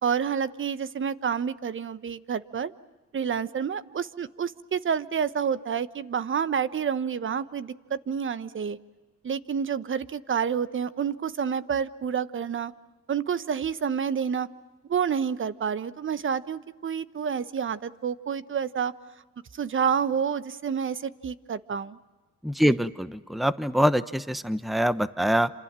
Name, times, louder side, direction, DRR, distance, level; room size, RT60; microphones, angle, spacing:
voice 1, 0.0-2.7 3.1-8.8 9.2-12.7 13.1-14.5 14.9-18.9 19.5-22.0 22.6-22.7, right 7 dB, 40° right, 14 dB, 1.2 m, -29 dB
voice 2, 22.4-25.5, equal, ahead, 14 dB, 1.0 m, -24 dB
28.5 x 27.0 x 7.6 m, 1.2 s
cardioid pair, 90°, 30 cm